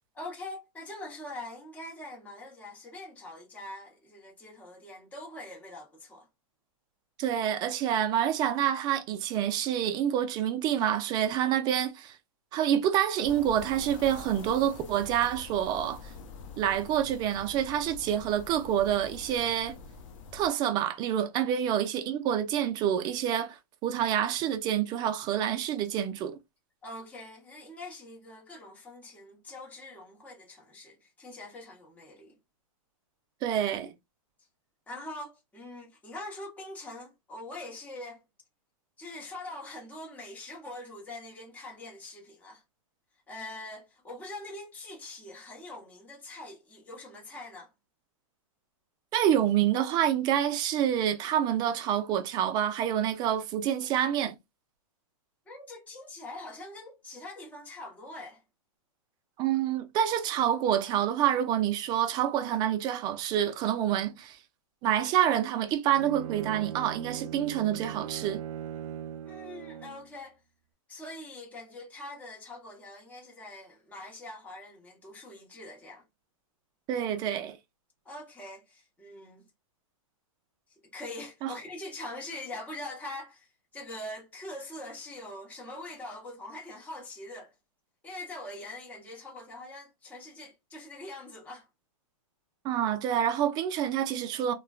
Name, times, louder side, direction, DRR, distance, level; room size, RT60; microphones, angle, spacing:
voice 1, 0.1-6.3 21.4-21.6 26.8-32.4 34.9-38.2 39.0-42.6 43.3-47.7 55.5-58.4 69.2-70.4 70.9-76.0 78.0-79.5 80.9-87.5 88.0-91.7, left 1 dB, 10° left, 0.9 m, -43 dB
voice 2, 7.2-12.2 12.5-16.0 16.6-19.8 20.3-26.4 33.4-33.9 49.1-54.3 59.4-64.4 64.8-68.4 76.9-77.6 81.4-81.5 92.6-94.5, right 10 dB, 25° right, 0.4 m, -27 dB
sound 1, 13.2-20.5, left 4 dB, 65° left, 0.8 m, -45 dB
Bowed string instrument, 65.9-70.1, right 10 dB, 70° right, 0.6 m, -39 dB
3.1 x 2.2 x 2.3 m
hypercardioid pair, 145°, 18 cm